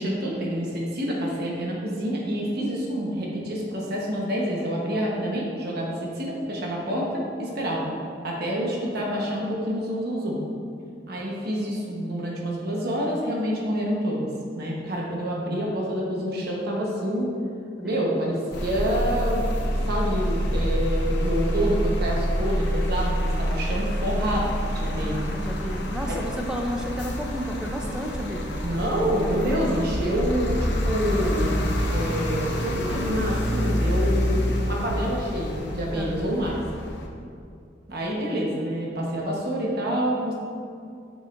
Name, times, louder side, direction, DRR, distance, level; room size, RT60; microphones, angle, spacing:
voice 1, 0.0-7.8 8.2-10.4 11.1-14.3 14.5-17.3 17.8-25.3 26.1-26.2 28.6-36.6 37.9-40.3, equal, 55° right, -3 dB, 1.1 m, -27 dB
sound 1, 18.5-37.1, equal, 65° left, 0.8 m, -27 dB
voice 2, 24.9-28.6 35.9-36.9, equal, 5° right, 0 dB, 0.5 m, -33 dB
7.2 x 5.4 x 2.6 m, 2.4 s
head